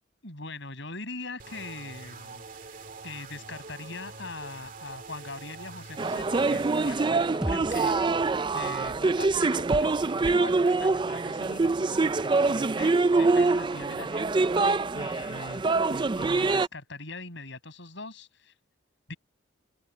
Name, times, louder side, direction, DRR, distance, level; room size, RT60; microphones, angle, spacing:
voice 1, 0.2-2.4 3.0-8.3 8.5-14.6 14.9-18.5 19.1-19.2, left 3 dB, 65° left, 7.0 m, -42 dB
sound 1, 1.4-6.9, right 4 dB, 45° right, 2.1 m, -45 dB
sound 2, 6.0-16.7, right 3 dB, 25° right, 0.4 m, -25 dB
sound 3, 7.4-11.8, equal, 5° right, 1.7 m, -41 dB
open air
head